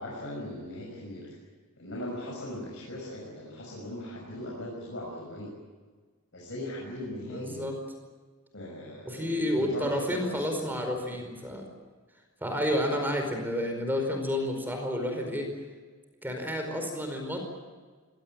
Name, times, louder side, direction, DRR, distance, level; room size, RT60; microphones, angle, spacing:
voice 1, 0.0-1.3 1.8-5.5 6.3-7.6 8.5-10.4, left 1 dB, 60° left, -4 dB, 6.1 m, -39 dB
voice 2, 7.3-7.8 9.1-11.6 12.4-15.5 16.2-17.4, left 1 dB, 10° right, 4 dB, 4.9 m, -30 dB
24.5 x 18.0 x 9.1 m, 1.4 s
head